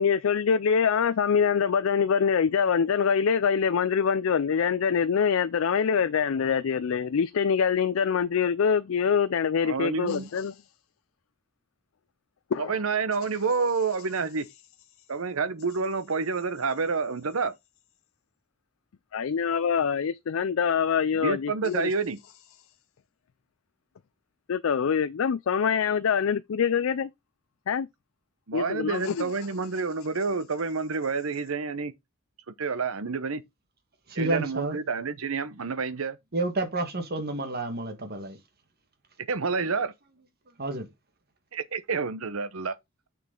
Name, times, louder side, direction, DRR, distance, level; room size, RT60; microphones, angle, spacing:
voice 1, 0.0-10.5 12.5-12.8 19.1-21.9 24.5-27.1 27.7-27.9 28.5-29.3, left 6 dB, 70° left, 0.4 m, -24 dB
voice 2, 9.6-10.3 12.6-14.5 15.1-17.5 21.2-22.2 28.5-31.9 32.6-33.4 34.2-36.2 39.3-39.9 41.5-42.7, right 4 dB, 80° right, 0.8 m, -28 dB
voice 3, 34.1-34.8 36.3-38.4 40.6-40.9, right 2 dB, 50° right, 1.7 m, -30 dB
6.6 x 6.6 x 3.8 m
head